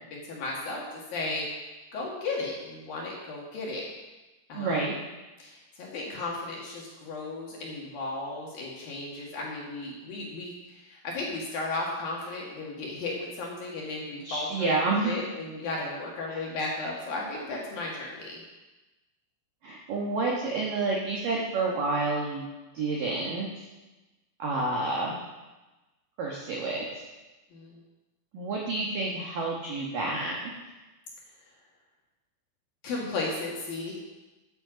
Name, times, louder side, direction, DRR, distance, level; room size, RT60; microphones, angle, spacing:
voice 1, 0.1-1.5 1.9-3.8 4.5-4.8 5.4-18.4 27.5-27.8 32.8-33.9, left 2 dB, 60° left, -3 dB, 2.9 m, -35 dB
voice 2, 4.5-5.0 14.2-15.2 16.3-16.4 19.6-22.5 22.7-23.5 24.4-25.2 26.2-27.0 28.3-30.5, right 3 dB, 70° right, -2 dB, 2.1 m, -29 dB
13.5 x 9.2 x 5.1 m, 1.1 s
omnidirectional pair, 5.9 m